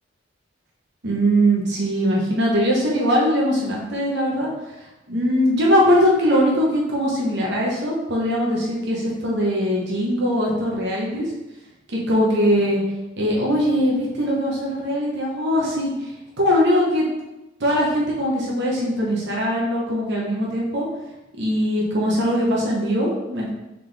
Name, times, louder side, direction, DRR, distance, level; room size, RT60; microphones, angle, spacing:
voice 1, 1.0-4.5 5.1-11.3 12.1-12.8 13.2-15.9 16.4-17.0 17.6-20.9 21.4-23.5, equal, 60° right, -4 dB, 1.0 m, -21 dB
4.1 x 3.8 x 3.4 m, 1.0 s
head